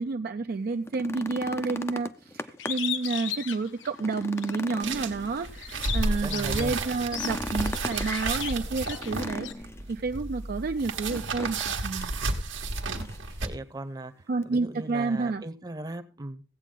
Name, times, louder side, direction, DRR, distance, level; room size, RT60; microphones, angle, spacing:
voice 1, 0.0-9.5 9.9-11.6 11.8-12.1 12.9-13.1 14.3-15.4, right 3 dB, 50° right, 7 dB, 0.4 m, -30 dB
sound 1, 0.7-3.0 3.4-3.5 3.9-5.8 7.0-8.1 9.0-9.9 11.1-11.7 12.0-12.1 12.7-13.3 14.4-14.5, left 1 dB, 15° left, 0.5 m, -37 dB
Bird, 2.6-4.6 5.0-9.5, left 9 dB, 80° left, 0.9 m, -36 dB
sound 2, 4.8-13.5, right 3 dB, 90° right, 1.4 m, -32 dB
voice 2, 6.0-7.1 13.4-16.4, right 1 dB, 20° right, 8 dB, 0.8 m, -39 dB
16.0 x 8.2 x 3.8 m, 0.36 s
head